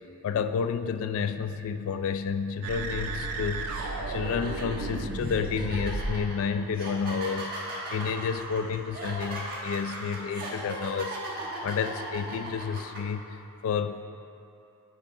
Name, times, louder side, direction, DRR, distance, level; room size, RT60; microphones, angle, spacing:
voice 1, 0.2-3.7 4.1-7.7 7.9-11.2 11.6-14.0, left 6 dB, 65° left, 11 dB, 0.3 m, -30 dB
sound 1, 2.6-6.3, right 3 dB, 80° right, 0.5 m, -33 dB
sound 2, 3.0-3.2 3.7-13.0, right 2 dB, 40° right, 1.2 m, -38 dB
9.7 x 3.5 x 3.7 m, 2.7 s
head